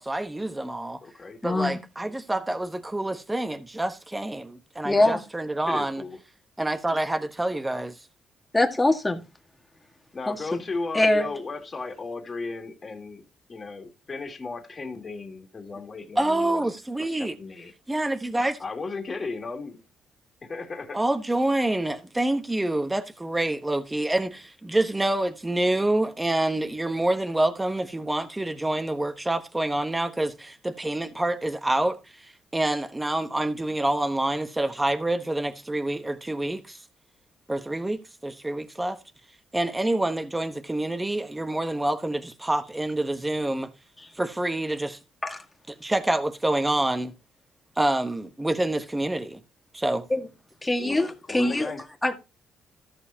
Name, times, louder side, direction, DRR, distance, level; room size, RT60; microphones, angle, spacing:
voice 1, 0.0-1.0 1.4-6.0 6.6-8.0 16.2-17.3 17.9-18.6 20.9-36.8 37.5-39.0 39.5-43.7 44.2-45.0 45.7-47.1 47.8-49.4 49.7-50.0, right 1 dB, 15° right, 1.1 m, -27 dB
voice 2, 1.0-1.4 5.7-6.2 10.1-13.2 13.5-16.7 17.0-17.7 18.6-19.8 20.4-21.0 50.8-51.0 51.3-51.8, left 3 dB, 35° left, 2.4 m, -35 dB
voice 3, 4.8-5.2 8.5-9.2 10.3-10.6 10.9-11.3 45.2-45.4 50.1-50.2 50.6-51.7 52.0-52.1, left 2 dB, 15° left, 1.8 m, -23 dB
14.0 x 6.5 x 2.9 m
cardioid pair, 90°, 0 cm